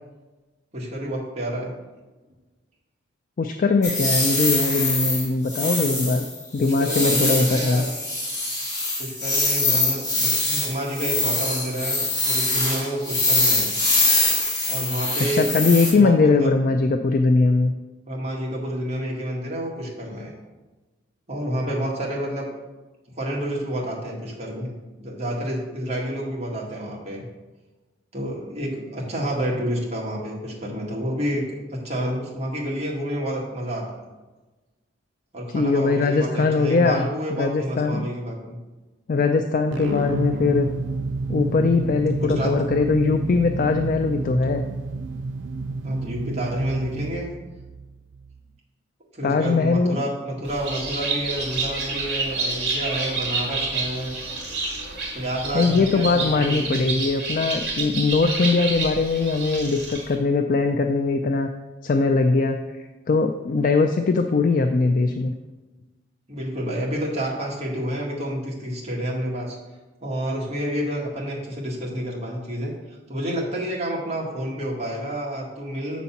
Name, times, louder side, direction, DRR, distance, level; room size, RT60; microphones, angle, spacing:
voice 1, 0.7-1.7 6.6-7.9 9.0-13.8 14.7-15.5 15.9-16.5 18.1-20.3 21.3-22.5 23.2-24.7 25.0-27.2 28.1-34.0 35.3-38.6 39.8-40.0 42.2-42.6 45.8-47.3 49.1-54.2 55.1-57.0 66.3-69.6 70.0-72.7 73.1-76.0, equal, 35° right, -4 dB, 1.9 m, -29 dB
voice 2, 3.4-6.2 6.5-7.8 15.3-17.7 35.5-37.0 37.4-38.1 39.1-40.7 41.3-44.6 49.2-50.0 55.5-61.5 61.8-65.3, left 3 dB, 45° left, 6 dB, 0.4 m, -21 dB
sound 1, 3.8-15.9, left 2 dB, 20° left, 2.5 m, -23 dB
sound 2, 39.7-48.4, right 3 dB, 85° right, 0.4 m, -30 dB
Bird, 50.4-60.2, right 3 dB, 60° right, 2.3 m, -29 dB
7.3 x 4.1 x 5.7 m, 1.2 s
head